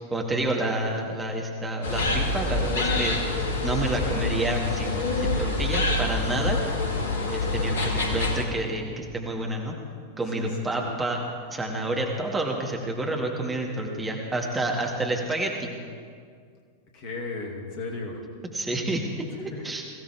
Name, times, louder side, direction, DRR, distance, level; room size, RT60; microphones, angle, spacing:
voice 1, 0.1-3.2 3.6-6.6 7.3-9.7 10.2-11.2 11.5-15.7 18.5-19.1 19.4-19.8, right 1 dB, 10° right, 0 dB, 2.0 m, -29 dB
sound 1, 1.8-8.4, left 2 dB, 65° left, 1.7 m, -26 dB
voice 2, 10.3-10.9 16.9-18.3 19.5-19.6, left 3 dB, 45° left, 1 dB, 2.5 m, -36 dB
21.5 x 16.0 x 3.5 m, 2.1 s
figure-of-eight pair, 90°, 0 cm